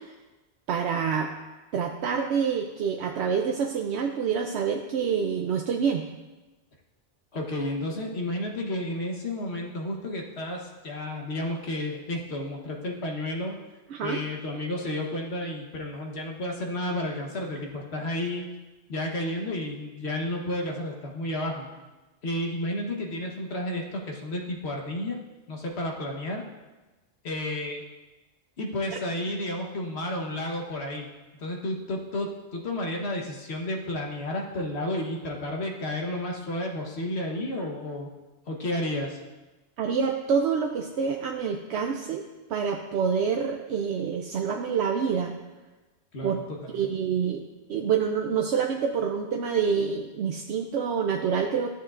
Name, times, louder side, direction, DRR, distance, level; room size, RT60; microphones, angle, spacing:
voice 1, 0.7-1.3 1.7-6.0 13.9-14.2 39.8-42.2 42.5-45.3 46.2-46.4 46.7-47.4 47.7-51.7, right 6 dB, 75° right, 3 dB, 0.9 m, -27 dB
voice 2, 7.3-13.6 14.0-18.5 18.9-21.7 22.2-25.2 25.5-26.4 27.2-27.8 28.6-31.1 31.4-38.1 38.5-39.2 46.1-46.9, left 1 dB, 70° left, 1 dB, 1.4 m, -32 dB
13.0 x 7.2 x 2.5 m, 1.2 s
omnidirectional pair, 1.1 m